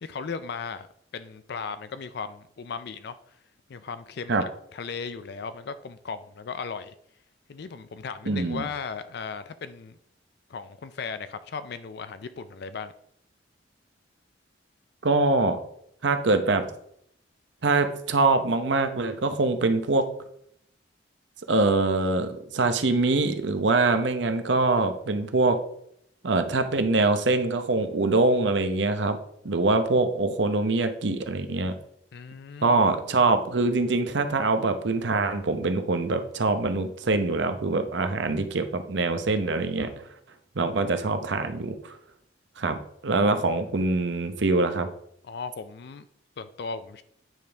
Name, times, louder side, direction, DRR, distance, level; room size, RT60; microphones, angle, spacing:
voice 1, 0.0-0.9 1.1-3.2 3.7-6.9 7.5-10.0 10.5-12.9 32.1-32.8 45.2-46.1 46.4-47.0, left 5 dB, 60° left, 12 dB, 0.4 m, -36 dB
voice 2, 8.3-8.7 15.0-15.6 16.0-16.7 17.6-20.1 21.5-25.6 26.2-29.2 29.4-31.7 32.6-39.9 40.5-42.0 42.6-42.8 43.0-44.9, right 3 dB, 70° right, 8 dB, 0.8 m, -24 dB
9.1 x 5.2 x 3.4 m, 0.71 s
head